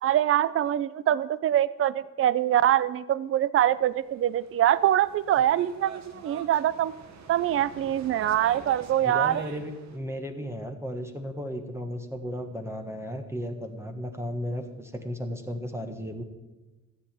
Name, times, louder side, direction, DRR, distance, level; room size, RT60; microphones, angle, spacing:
voice 1, 0.0-6.9 7.3-9.4, right 11 dB, 45° right, 18 dB, 0.5 m, -24 dB
sound 1, 3.7-10.0, right 5 dB, 65° right, 1.5 m, -46 dB
voice 2, 9.0-16.2, equal, 10° right, 5 dB, 1.4 m, -35 dB
13.0 x 8.6 x 7.5 m, 1.2 s
cardioid pair, 90°, 30 cm